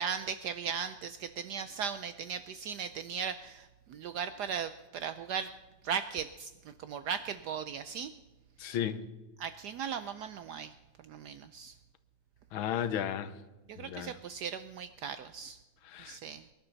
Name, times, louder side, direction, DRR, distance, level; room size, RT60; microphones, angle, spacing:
voice 1, 0.0-5.5 5.8-8.1 9.4-10.7 11.0-11.8 13.7-15.6 16.0-16.5, right 7 dB, 90° right, 0.9 m, -37 dB
voice 2, 8.6-9.1 12.5-13.3 13.8-14.2 15.8-16.2, left 9 dB, 70° left, 1.7 m, -34 dB
24.0 x 11.5 x 4.0 m
omnidirectional pair, 2.4 m